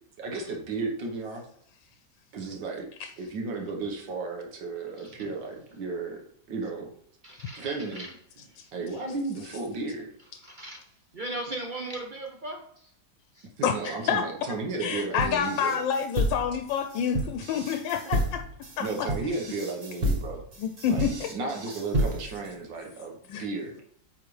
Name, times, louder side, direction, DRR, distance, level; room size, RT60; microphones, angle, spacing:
voice 1, 0.2-1.4 2.3-2.9 3.2-6.2 6.5-6.9 7.6-8.1 8.7-10.1 13.6-15.8 18.8-20.4 20.9-23.1 23.4-23.7, right 3 dB, 85° right, 1 dB, 1.9 m, -34 dB
voice 2, 5.0-5.3 7.2-8.6 10.4-12.9 13.3-13.5 18.2-18.3 23.7-23.8, right 2 dB, 70° right, 2 dB, 0.4 m, -39 dB
voice 3, 13.6-14.2 14.8-18.4 18.8-19.1 20.6-21.3 23.3-23.4, left 7 dB, 90° left, 6 dB, 1.3 m, -28 dB
sound 1, 15.2-22.5, equal, 35° right, 1.2 m, -30 dB
9.1 x 4.2 x 3.2 m, 0.62 s
omnidirectional pair, 2.0 m